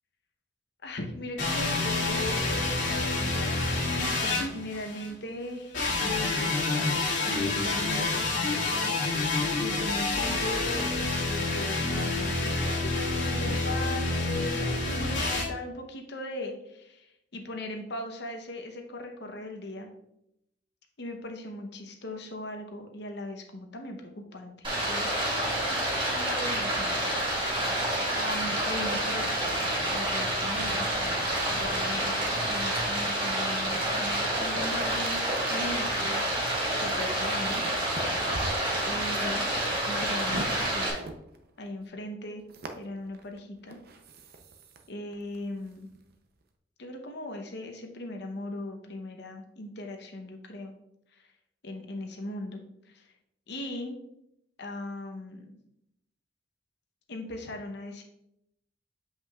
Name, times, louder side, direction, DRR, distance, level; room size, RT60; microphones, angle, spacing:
voice 1, 0.8-3.6 4.0-19.9 21.0-29.3 29.9-37.7 38.8-41.0 41.6-42.4 42.8-43.8 44.9-45.9 46.8-50.7 51.1-51.3 51.6-53.1 53.5-54.0 54.6-55.5 57.1-58.0, left 1 dB, 60° left, 4 dB, 0.8 m, -39 dB
sound 1, 1.4-5.1 5.7-15.4, left 2 dB, 80° left, 2.1 m, -28 dB
Stream, 24.6-40.9, right 1 dB, 25° right, 1.6 m, -28 dB
sound 2, 28.8-33.7 34.8-41.8 42.5-44.9 45.1-46.4, right 2 dB, 55° right, 0.6 m, -44 dB
7.4 x 5.6 x 2.3 m, 0.80 s
head